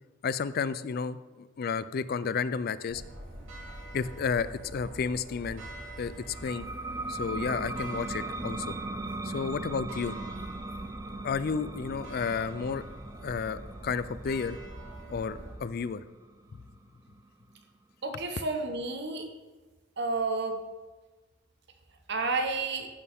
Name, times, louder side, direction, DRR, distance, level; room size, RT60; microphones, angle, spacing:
voice 1, 0.2-3.0 3.9-5.6 6.0-6.7 7.1-8.7 9.2-10.2 11.2-12.8 13.2-14.6 15.1-16.0, left 5 dB, 50° left, 16 dB, 0.4 m, -32 dB
sound 1, 2.9-15.6, right 1 dB, 85° right, 2.9 m, -44 dB
sound 2, 6.3-17.6, right 2 dB, 15° right, 0.4 m, -39 dB
voice 2, 18.0-19.3 20.0-20.6 22.1-22.9, right 3 dB, 55° right, 5 dB, 1.1 m, -30 dB
14.0 x 6.8 x 3.5 m, 1.3 s
head